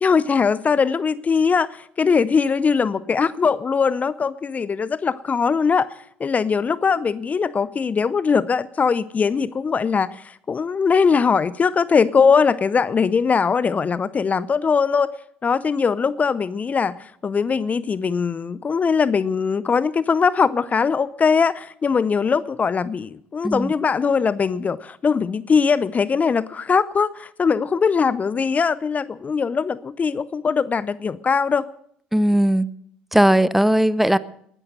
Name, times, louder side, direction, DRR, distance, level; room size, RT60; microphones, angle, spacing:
voice 1, 0.0-5.9 6.2-15.1 15.4-31.7, left 5 dB, 30° left, 0.6 m, -21 dB
voice 2, 32.1-32.7 33.1-34.2, right 1 dB, 5° right, 0.8 m, -17 dB
20.0 x 11.0 x 6.6 m
hypercardioid pair, 60°, 5 cm